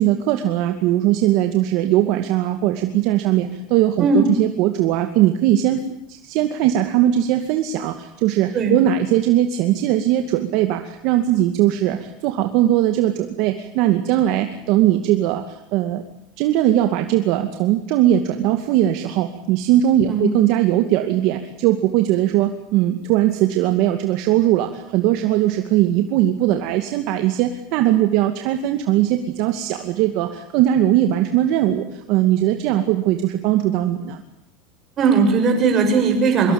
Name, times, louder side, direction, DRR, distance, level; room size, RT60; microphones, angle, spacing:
voice 1, 0.0-16.0 16.4-34.2, right 12 dB, 50° right, 6 dB, 2.3 m, -19 dB
voice 2, 35.0-36.5, right 4 dB, 25° right, 4 dB, 7.2 m, -17 dB
25.0 x 23.0 x 8.9 m, 0.79 s
supercardioid pair, 165°, 0 cm